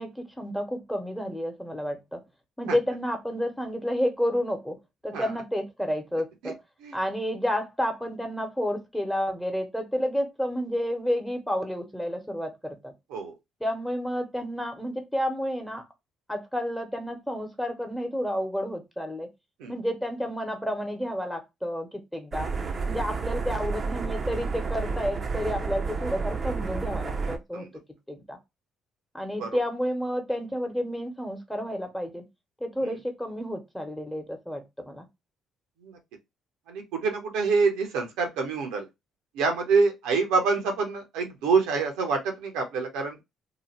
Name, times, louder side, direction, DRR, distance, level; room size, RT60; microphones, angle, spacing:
voice 1, 0.0-2.2 2.6-4.8 5.0-6.6 6.9-12.9 13.6-15.8 16.3-19.3 19.7-22.5 22.9-27.7 28.1-28.4 29.1-32.2 32.6-35.1, equal, 5° left, 1.2 m, -30 dB
sound 1, 22.3-27.4, right 4 dB, 40° right, 0.6 m, -30 dB
voice 2, 36.7-38.9 39.3-43.2, right 4 dB, 75° right, 0.8 m, -26 dB
2.9 x 2.3 x 3.0 m
hypercardioid pair, 50°, 0 cm